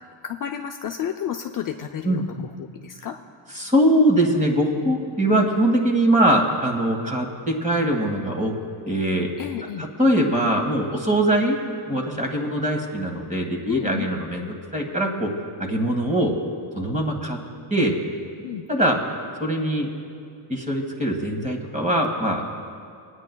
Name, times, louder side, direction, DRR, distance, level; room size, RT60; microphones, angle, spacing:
voice 1, 0.2-2.2 2.6-3.1 4.7-4.9 9.4-9.8 13.6-14.1 15.6-15.8 18.4-18.6, left 9 dB, 45° left, 4 dB, 0.5 m, -31 dB
voice 2, 2.0-2.4 3.5-8.5 8.8-9.3 9.8-11.6 11.9-15.3 15.6-16.3 16.7-17.4 17.7-17.9 18.7-19.0 19.4-19.9 20.5-22.6, right 1 dB, 15° right, 3 dB, 1.6 m, -22 dB
24.5 x 9.5 x 2.3 m, 2.4 s
cardioid pair, 95°, 49 cm